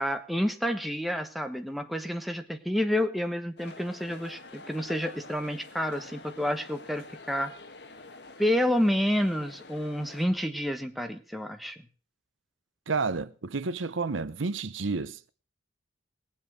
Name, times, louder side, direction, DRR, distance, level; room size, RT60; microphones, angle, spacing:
voice 1, 0.0-7.5 8.4-11.8, equal, ahead, 1.2 m, -29 dB
sound 1, 3.6-10.3, left 3 dB, 60° left, 1.4 m, -47 dB
voice 2, 12.9-15.3, right 4 dB, 85° right, 0.8 m, -30 dB
19.5 x 7.6 x 6.2 m
head